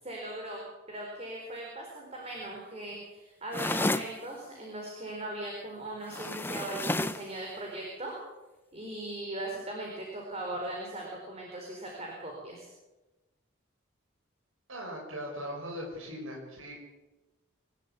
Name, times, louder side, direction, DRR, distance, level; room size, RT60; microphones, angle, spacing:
voice 1, 0.0-0.6 0.9-8.1 8.7-12.7, right 1 dB, 30° right, -1 dB, 4.5 m, -39 dB
sound 1, 3.5-4.1 6.1-7.3, left 2 dB, 10° left, 0.6 m, -31 dB
voice 2, 14.7-16.8, equal, 75° right, 0 dB, 6.2 m, -39 dB
26.0 x 12.5 x 8.4 m, 1.1 s
head